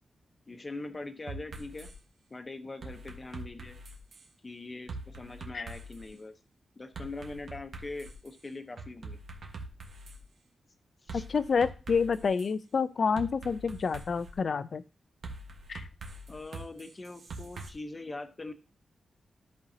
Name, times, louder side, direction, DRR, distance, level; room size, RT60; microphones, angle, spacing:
voice 1, 0.5-1.9 2.3-3.8 4.4-6.4 6.8-9.2 11.0-11.3 16.3-18.5, left 2 dB, 30° left, 8 dB, 0.9 m, -42 dB
sound 1, 1.3-1.9 2.8-4.3 4.9-6.1 6.9-8.3 8.8-10.2 11.1-12.5 13.2-14.3 15.2-17.7, right 2 dB, 75° right, 1.3 m, -43 dB
voice 2, 11.1-14.8 15.7-15.9, left 5 dB, 55° left, 14 dB, 0.5 m, -28 dB
13.5 x 5.4 x 2.8 m, 0.35 s
wide cardioid pair, 125°, 0 cm